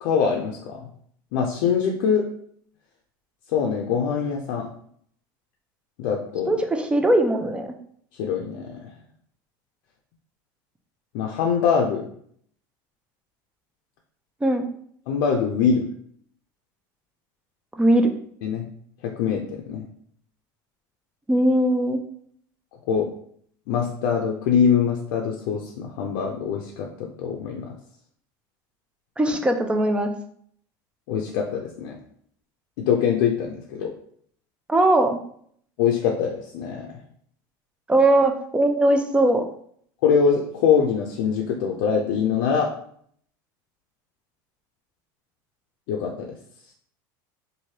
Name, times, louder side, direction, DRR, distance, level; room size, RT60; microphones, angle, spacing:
voice 1, 0.0-0.9 1.3-2.3 3.5-4.7 6.0-6.6 8.2-8.9 11.1-12.1 15.1-15.9 18.4-18.6 19.0-19.8 22.9-23.1 23.7-27.7 31.1-32.0 32.9-33.9 35.8-37.0 40.0-42.7 45.9-46.4, left 7 dB, 75° left, 0 dB, 0.5 m, -23 dB
voice 2, 6.5-7.7 14.4-14.7 17.8-18.1 21.3-22.0 29.2-30.1 34.7-35.2 37.9-39.5, right 1 dB, 10° right, 5 dB, 0.4 m, -20 dB
3.1 x 2.6 x 2.8 m, 0.63 s
supercardioid pair, 125°, 11 cm